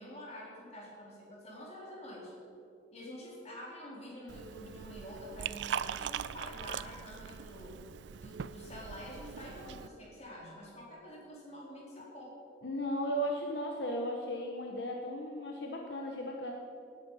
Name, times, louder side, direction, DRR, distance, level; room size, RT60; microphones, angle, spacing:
voice 1, 0.0-2.3 2.9-7.8 8.1-12.3, equal, 35° left, -4 dB, 4.0 m, -47 dB
Liquid, 4.3-9.9, right 8 dB, 75° right, 0.4 m, -41 dB
voice 2, 12.6-16.5, equal, 70° left, 1 dB, 1.1 m, -36 dB
18.5 x 9.5 x 5.6 m, 2.6 s
head